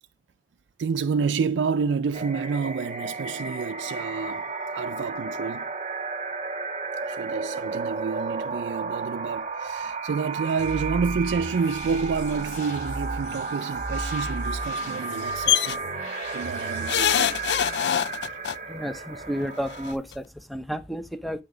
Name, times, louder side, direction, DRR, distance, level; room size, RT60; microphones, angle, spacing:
voice 1, 0.8-5.7 7.0-15.8 16.3-17.4 18.2-18.4, right 5 dB, 85° right, 0.4 m, -29 dB
sound 1, 2.1-19.9, right 4 dB, 40° right, 1.1 m, -33 dB
sound 2, 10.6-18.0, equal, 45° left, 3.4 m, -37 dB
sound 3, 15.5-15.8 16.9-18.6 19.7-19.8 20.1-20.2, left 11 dB, 65° left, 0.3 m, -23 dB
voice 2, 18.7-21.4, equal, ahead, 0.7 m, -32 dB
8.2 x 5.7 x 3.8 m
head